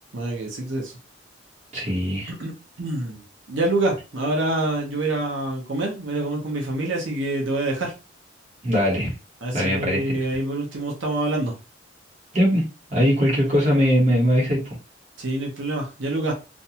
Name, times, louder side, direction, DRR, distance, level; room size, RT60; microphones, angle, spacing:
voice 1, 0.1-0.9 2.4-7.9 9.4-11.5 15.2-16.3, right 2 dB, 80° right, -1 dB, 0.8 m, -26 dB
voice 2, 1.7-2.3 8.6-9.1 9.5-10.0 12.3-12.6 12.9-14.8, equal, 35° right, -4 dB, 0.9 m, -20 dB
2.5 x 2.2 x 2.8 m, 0.31 s
head